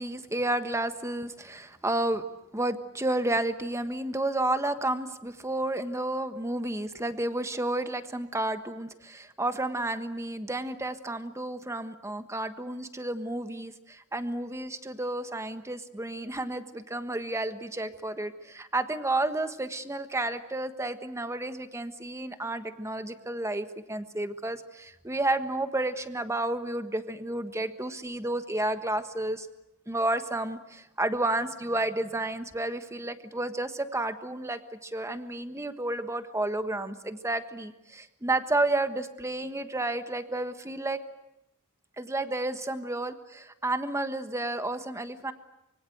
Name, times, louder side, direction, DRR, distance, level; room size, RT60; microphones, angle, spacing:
voice 1, 0.0-2.2 2.5-29.5 29.9-41.0 42.0-45.3, right 2 dB, 15° right, 9 dB, 1.4 m, -31 dB
25.0 x 24.0 x 8.0 m, 0.90 s
head